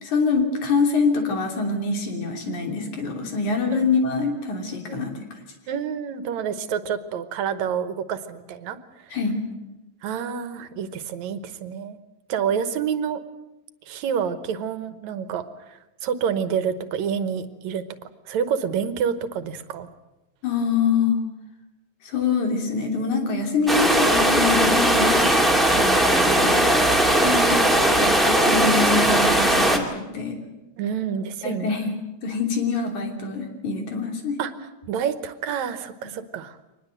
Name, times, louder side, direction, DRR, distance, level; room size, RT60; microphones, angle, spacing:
voice 1, 0.0-5.1 9.1-9.4 20.4-21.2 22.0-26.7 27.8-30.4 31.4-32.0 32.2-34.4 36.0-36.1, left 4 dB, 85° left, 3 dB, 4.5 m, -25 dB
voice 2, 3.7-4.1 4.9-5.1 5.7-8.8 9.1-9.2 10.0-12.0 12.3-13.2 13.9-19.9 27.2-28.2 30.8-32.0 34.4-34.5 34.9-36.6, right 7 dB, 75° right, 12 dB, 2.4 m, -28 dB
The noise of the river in forest, 23.7-29.8, right 1 dB, ahead, 1.7 m, -18 dB
24.0 x 20.0 x 7.8 m, 0.99 s
omnidirectional pair, 3.3 m